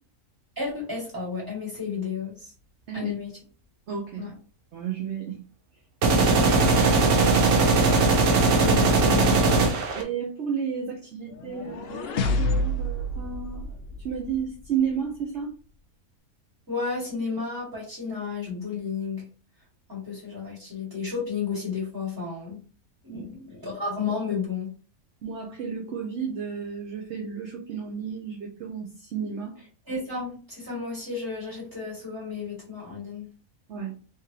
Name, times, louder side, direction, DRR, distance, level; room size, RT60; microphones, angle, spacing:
voice 1, 0.6-2.5 2.9-3.3 4.2-4.3 8.6-9.4 16.7-19.3 19.9-22.6 23.0-24.7 29.9-33.2, left 5 dB, 15° right, -6 dB, 2.0 m, -32 dB
voice 2, 3.9-4.3 4.7-5.4 9.9-13.7 14.0-15.5 23.1-23.2 25.2-29.6 33.7-33.9, right 7 dB, 60° right, 1 dB, 0.9 m, -32 dB
sound 1, 6.0-10.0, right 3 dB, 90° right, 1.2 m, -20 dB
sound 2, 11.3-14.5, left 1 dB, 65° left, 0.6 m, -28 dB
3.6 x 3.2 x 2.8 m, 0.37 s
omnidirectional pair, 1.5 m